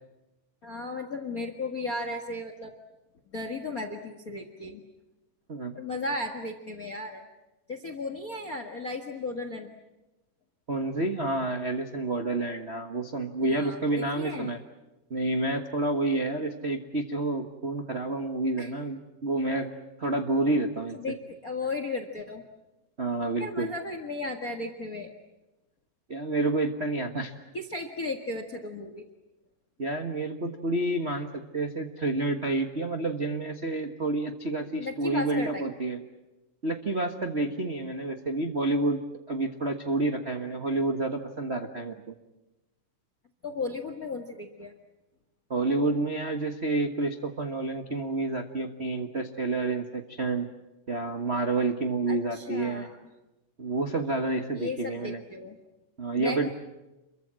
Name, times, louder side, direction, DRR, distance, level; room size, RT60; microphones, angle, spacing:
voice 1, 0.6-2.7 3.3-4.8 5.7-7.2 7.7-9.7 13.4-14.5 18.6-18.7 20.9-22.4 23.4-25.1 27.5-29.0 34.8-35.7 43.4-44.7 52.1-53.0 54.5-55.6 56.1-56.5, left 2 dB, 35° left, 8 dB, 1.5 m, -35 dB
voice 2, 10.7-14.6 15.1-19.7 20.0-21.0 23.0-23.7 26.1-27.3 29.8-36.0 36.6-39.0 39.3-42.1 45.5-50.5 50.9-52.9 53.6-55.2 56.0-56.5, right 2 dB, 60° right, 3 dB, 0.6 m, -29 dB
28.5 x 23.0 x 7.6 m, 1.0 s
omnidirectional pair, 3.8 m